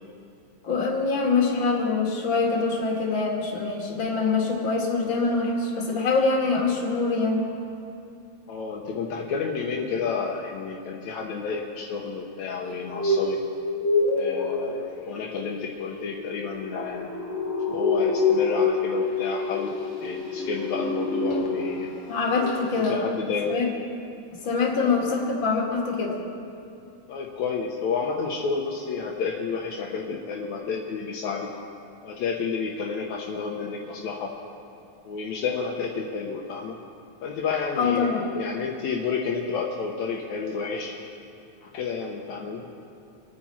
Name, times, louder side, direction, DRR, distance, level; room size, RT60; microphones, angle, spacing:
voice 1, 0.6-7.5 22.1-23.0 23.5-23.7 24.4-26.2 37.8-38.3, left 4 dB, 45° left, -2 dB, 2.8 m, -24 dB
voice 2, 8.5-13.4 14.2-17.1 17.7-21.9 22.8-23.6 24.7-25.1 27.1-31.5 32.0-34.3 35.1-36.8 37.2-41.0 41.7-42.6, left 5 dB, 75° left, -1 dB, 2.3 m, -30 dB
sound 1, 12.7-22.0 22.3-22.6 22.8-22.9, left 3 dB, 60° left, 2.3 m, -27 dB
26.5 x 9.6 x 4.3 m, 2.6 s
omnidirectional pair, 3.3 m